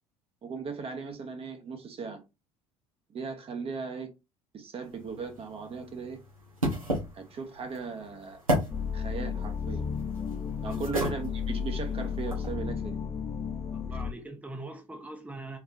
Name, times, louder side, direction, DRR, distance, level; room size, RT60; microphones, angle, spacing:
voice 1, 0.4-2.2 3.1-4.1 4.5-6.2 7.1-8.4 8.9-9.9 10.6-13.0, right 5 dB, 35° right, 1.0 m, -37 dB
sound 1, 4.8-12.5, equal, 85° right, 1.4 m, -35 dB
sound 2, 8.7-14.1, left 6 dB, 20° left, 0.4 m, -33 dB
voice 2, 13.7-15.6, right 2 dB, 10° right, 0.9 m, -42 dB
4.0 x 3.4 x 2.6 m
figure-of-eight pair, 60°, 17 cm